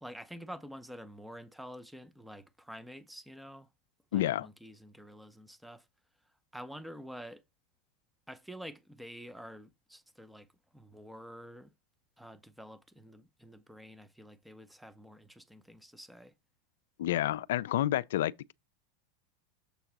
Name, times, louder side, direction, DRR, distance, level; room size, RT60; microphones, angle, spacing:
voice 1, 0.0-3.7 4.1-5.9 6.5-7.4 8.3-11.7 12.2-16.3, equal, ahead, 0.6 m, -48 dB
voice 2, 4.1-4.5 17.0-18.5, left 13 dB, 80° left, 0.4 m, -29 dB
7.2 x 3.9 x 5.9 m
supercardioid pair, 135°, 0 cm